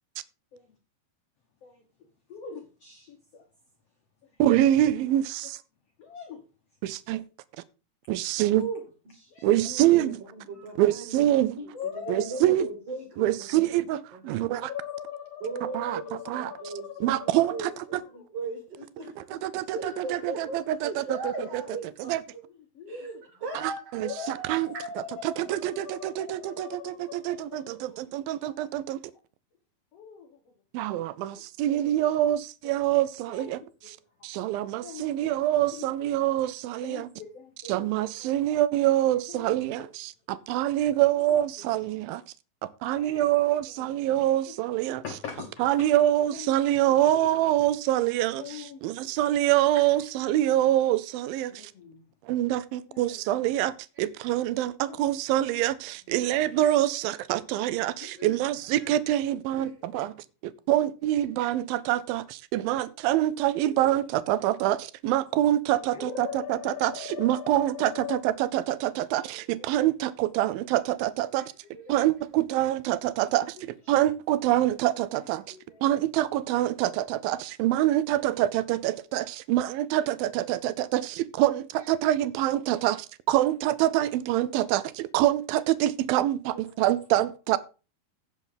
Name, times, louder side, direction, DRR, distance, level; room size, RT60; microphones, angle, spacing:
voice 1, 2.3-3.5 4.2-4.4 6.0-6.4 8.5-9.5 10.5-10.7 11.7-12.4 14.4-15.9 16.2-17.3 18.1-18.3 21.7-22.1 22.5-23.3 24.0-28.0 28.4-28.6 29.9-30.5 31.3-31.8 33.3-34.3 34.8-35.3 35.7-36.1 36.8-37.9 38.2-38.3 39.3-39.8 40.5-40.6 41.2-41.7 42.9-43.4 43.7-43.9 44.4-44.5 45.0-45.6 46.3-46.5 47.1-47.3 48.4-49.1 51.5-52.0 52.9-53.2 54.9-55.0 55.5-55.6 58.0-58.4 59.6-60.0 63.7-63.8 65.9-68.3 69.3-69.7 71.6-72.1 73.2-73.3 75.5-75.9 79.9-80.1 83.4-83.5 86.5-86.7 87.5-87.6, left 5 dB, 75° left, 1.4 m, -41 dB
voice 2, 4.4-5.6 6.8-7.2 8.1-8.6 9.4-10.2 10.8-11.5 12.1-12.7 13.2-14.7 15.7-16.0 16.3-16.5 17.0-18.0 19.3-21.6 22.1-22.2 23.5-24.7 25.2-29.0 30.7-33.6 34.2-37.1 37.7-42.2 42.6-45.0 45.6-51.7 52.2-60.1 60.4-71.5 71.9-75.6 75.8-87.6, right 13 dB, 80° right, 2.2 m, -25 dB
voice 3, 9.6-11.7 12.1-13.8 14.1-14.4 15.4-19.4 19.7-21.7 22.9-23.1 23.4-24.4 58.2-58.4 58.8-58.9 59.6-59.7, right 3 dB, 40° right, 3.0 m, -38 dB
16.0 x 6.2 x 3.9 m
omnidirectional pair, 4.6 m